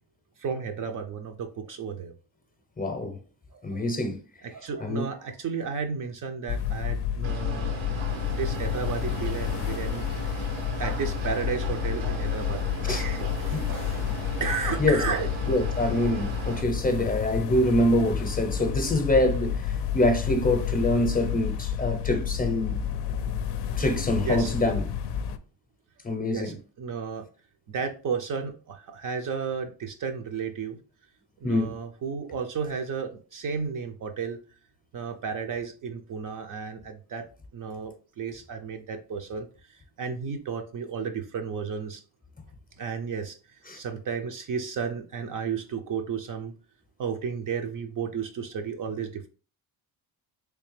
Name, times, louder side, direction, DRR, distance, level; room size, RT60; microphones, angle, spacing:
voice 1, 0.4-2.1 3.5-3.8 4.4-7.8 8.3-14.1 14.4-15.3 24.2-24.5 26.3-27.3 27.7-30.8 31.4-34.4 34.9-37.3 37.5-42.0 42.8-43.4 43.8-46.5 47.0-49.3, right 6 dB, 45° right, 0.5 m, -33 dB
voice 2, 2.8-3.2 3.6-4.2 4.8-5.0 12.8-13.0 13.5-13.7 14.8-15.0 15.5-22.8 23.8-24.9 26.0-26.5 31.4-31.7 43.7-43.8, left 1 dB, 20° left, 0.6 m, -25 dB
sound 1, 6.5-25.4, left 9 dB, 60° left, 0.5 m, -30 dB
sound 2, 7.2-16.6, right 4 dB, 85° right, 0.9 m, -38 dB
3.3 x 3.3 x 3.1 m
cardioid pair, 100°, 46 cm